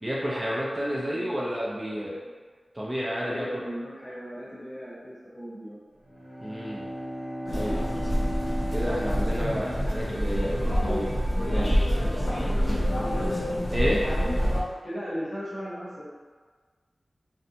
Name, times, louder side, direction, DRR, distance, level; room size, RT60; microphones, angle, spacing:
voice 1, 0.0-2.1 2.8-3.5 6.4-6.9 7.5-7.8 8.7-11.1 11.5-11.8 13.7-14.0, equal, 20° right, -7 dB, 0.5 m, -30 dB
voice 2, 0.9-1.6 2.1-2.2 3.2-5.8 12.0-13.0 14.8-16.1, equal, 35° left, -8 dB, 0.9 m, -38 dB
Bowed string instrument, 6.0-10.3, equal, 70° right, 1.1 m, -36 dB
sound 1, 7.5-14.6, equal, 70° left, 0.7 m, -26 dB
2.6 x 2.2 x 2.7 m, 1.5 s
wide cardioid pair, 85°, 0 cm